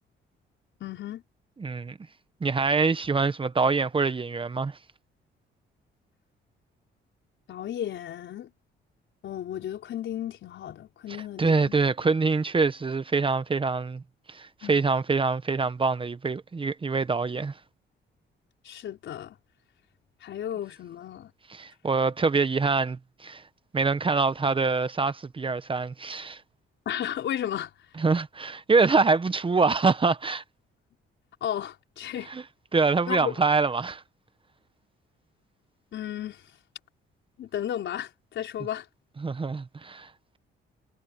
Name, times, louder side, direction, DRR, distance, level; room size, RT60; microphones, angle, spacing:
voice 1, 0.8-1.2 7.5-8.5 9.2-11.7 14.6-14.9 18.6-19.4 20.2-21.3 26.8-27.7 31.4-32.3 33.1-33.4 35.9-36.5 37.4-38.9, left 10 dB, 70° left, 4.8 m, -34 dB
voice 2, 1.6-2.0 2.4-4.8 11.4-14.0 14.3-17.5 21.6-23.4 23.7-26.4 28.0-30.4 32.3-32.4 32.7-34.0 39.2-40.1, right 4 dB, 25° right, 1.0 m, -25 dB
cardioid pair, 90°, 20 cm